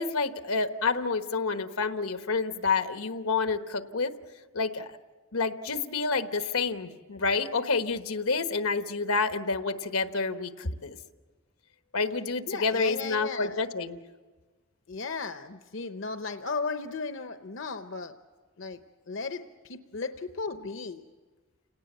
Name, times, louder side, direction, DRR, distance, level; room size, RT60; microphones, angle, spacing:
voice 1, 0.0-4.1 4.5-4.9 5.3-11.0 11.9-14.0, left 4 dB, 90° left, 8 dB, 1.2 m, -29 dB
voice 2, 12.5-13.6 14.9-18.1 18.6-18.8 19.1-21.0, left 4 dB, 60° left, 8 dB, 0.8 m, -35 dB
30.0 x 18.0 x 8.1 m, 1.4 s
head